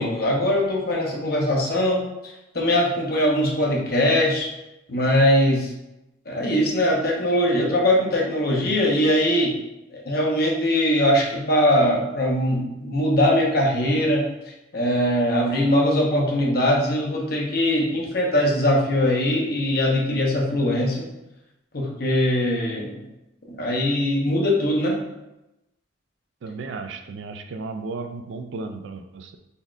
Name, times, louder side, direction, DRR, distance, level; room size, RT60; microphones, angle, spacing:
voice 1, 0.0-2.0 2.5-4.5 4.9-5.7 6.3-9.6 9.9-14.3 14.7-21.1 21.7-23.0 23.6-25.0, left 1 dB, 50° left, -1 dB, 0.8 m, -21 dB
voice 2, 26.4-29.4, right 3 dB, 70° right, 7 dB, 0.4 m, -34 dB
4.1 x 3.5 x 2.5 m, 0.92 s
head